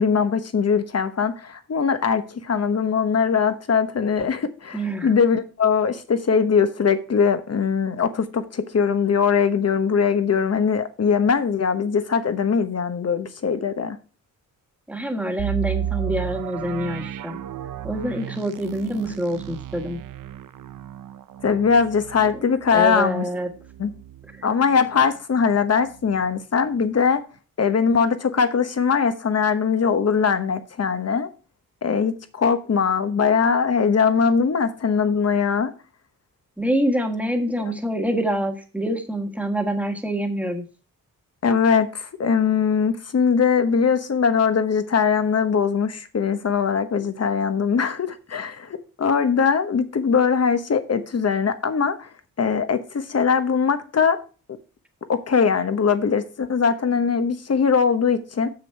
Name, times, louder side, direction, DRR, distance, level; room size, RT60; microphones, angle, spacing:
voice 1, 0.0-14.0 21.4-23.3 23.8-23.9 24.4-27.2 27.6-31.3 31.8-35.7 41.4-52.1 52.4-54.2 55.1-58.5, left 6 dB, 45° left, 1.0 m, -21 dB
voice 2, 4.7-5.1 14.9-17.4 17.8-20.0 22.7-23.5 36.6-40.6, equal, 5° right, 1.5 m, -26 dB
sound 1, 15.4-25.1 25.5-25.6 26.1-26.3, right 12 dB, 65° right, 0.5 m, -33 dB
7.1 x 6.7 x 4.5 m
wide cardioid pair, 100°, 35 cm